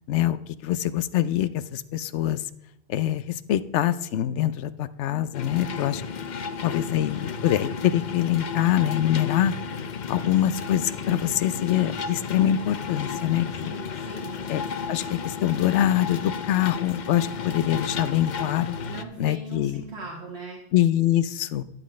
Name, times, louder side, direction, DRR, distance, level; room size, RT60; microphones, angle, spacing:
voice 1, 0.1-2.4 2.9-6.0 6.6-9.5 10.1-13.8 14.5-18.7 19.2-19.8 20.7-21.6, left 12 dB, 90° left, 14 dB, 0.9 m, -24 dB
sound 1, 5.3-19.0, left 5 dB, 50° left, 0.6 m, -33 dB
voice 2, 13.5-14.4 18.9-20.6, right 3 dB, 65° right, -4 dB, 2.0 m, -40 dB
12.0 x 9.9 x 3.2 m, 0.83 s
omnidirectional pair, 1.2 m